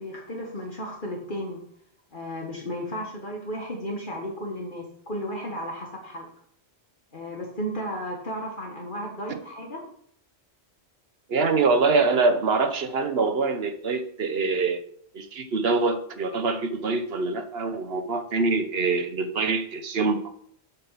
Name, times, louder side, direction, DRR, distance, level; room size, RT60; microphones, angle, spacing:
voice 1, 0.0-1.6 2.1-6.3 7.1-9.8, equal, 50° left, 1.5 m, -34 dB
voice 2, 11.3-14.8 15.1-20.4, right 4 dB, 65° right, 1.1 m, -24 dB
8.1 x 5.5 x 5.7 m
omnidirectional pair, 1.1 m